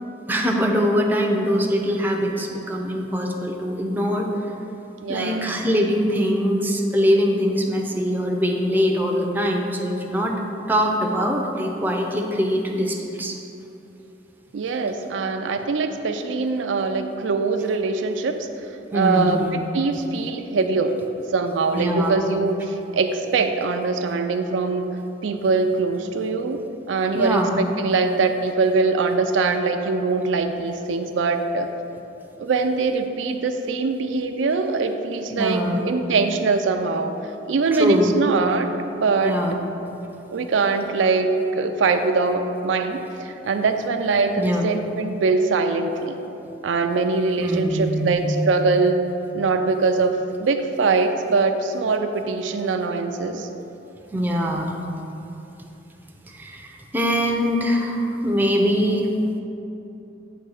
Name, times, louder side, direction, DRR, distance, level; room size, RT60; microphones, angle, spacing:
voice 1, 0.3-4.3 5.1-10.3 10.7-13.4 18.9-19.6 21.7-22.1 27.1-27.6 35.3-35.8 37.8-38.1 39.2-39.5 44.4-44.6 47.4-48.4 54.1-54.7 56.3-59.1, equal, 10° right, 0 dB, 0.5 m, -22 dB
voice 2, 5.0-5.5 14.5-18.5 18.9-19.4 19.7-20.9 21.3-24.8 25.2-26.6 26.9-31.7 32.4-37.1 37.5-38.7 39.0-39.3 40.3-46.2 46.6-48.9 49.3-53.5, right 4 dB, 80° right, 6 dB, 0.4 m, -22 dB
7.8 x 3.3 x 6.3 m, 2.9 s
head